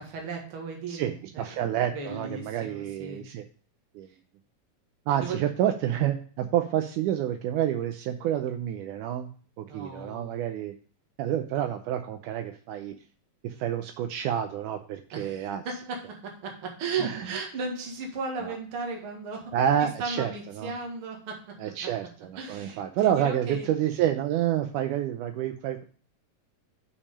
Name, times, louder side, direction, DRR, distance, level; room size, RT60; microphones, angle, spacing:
voice 1, 0.0-1.5 1.9-3.3 5.2-5.4 9.7-10.4 15.1-19.5 19.8-21.9 22.4-22.8 23.1-23.7, right 4 dB, 45° right, 0 dB, 2.3 m, -36 dB
voice 2, 0.9-3.4 4.0-4.1 5.1-9.3 9.6-10.7 11.2-12.9 13.4-15.6 17.0-17.4 18.4-18.6 19.5-20.7 21.6-25.8, right 10 dB, 80° right, 6 dB, 2.0 m, -28 dB
6.6 x 5.9 x 5.4 m, 0.42 s
omnidirectional pair, 3.9 m